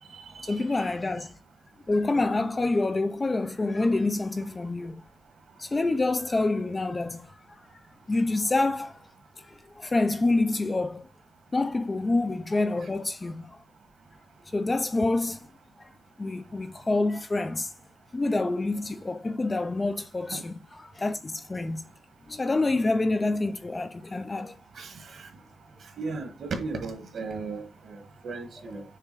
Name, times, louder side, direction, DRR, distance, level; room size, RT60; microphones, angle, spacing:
voice 1, 0.4-1.3 1.9-5.0 5.6-7.6 8.1-9.0 9.4-11.1 11.5-13.6 14.5-15.5 15.8-15.9 16.2-17.7 18.1-21.8 22.3-24.6 26.7-26.8 28.7-28.8, left 2 dB, 20° left, 0.4 m, -27 dB
voice 2, 26.0-28.8, right 4 dB, 55° right, 1.4 m, -35 dB
6.6 x 3.5 x 4.6 m
wide cardioid pair, 155°, 0 cm